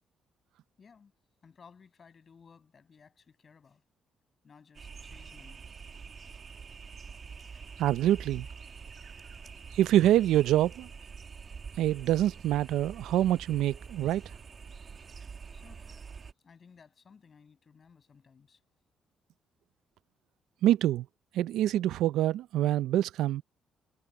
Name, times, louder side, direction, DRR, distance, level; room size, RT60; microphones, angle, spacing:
voice 1, 0.8-1.1 1.4-3.8 4.4-6.0 7.5-7.7 9.4-9.7 15.5-16.0 16.4-18.6, left 6 dB, 45° left, 6.6 m, -58 dB
sound 1, 4.7-16.3, right 5 dB, 45° right, 1.5 m, -46 dB
voice 2, 7.8-8.5 9.7-10.9 11.8-14.2 20.6-21.1 21.3-23.4, right 13 dB, 85° right, 0.5 m, -25 dB
cardioid pair, 90°, 0 cm